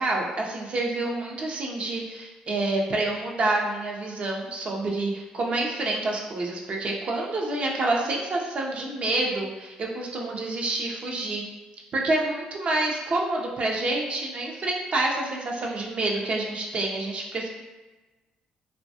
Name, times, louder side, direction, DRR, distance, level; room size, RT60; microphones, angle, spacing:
voice 1, 0.0-11.4 11.9-17.5, right 2 dB, 45° right, -1 dB, 0.5 m, -28 dB
2.5 x 2.1 x 2.6 m, 1.2 s
cardioid pair, 80°, 3 cm